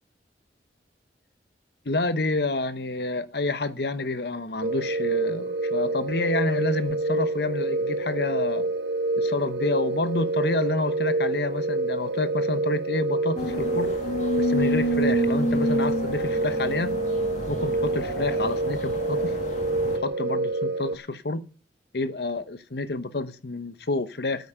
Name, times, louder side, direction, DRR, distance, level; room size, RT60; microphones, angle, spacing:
voice 1, 1.8-8.6 9.2-13.9 14.4-16.9 17.5-19.3 19.8-21.4 21.9-24.5, left 2 dB, 65° left, 0.9 m, -29 dB
sound 1, 4.6-21.0, right 2 dB, 85° right, 0.8 m, -27 dB
sound 2, 13.4-20.0, equal, 45° left, 2.1 m, -29 dB
9.6 x 9.3 x 6.8 m
head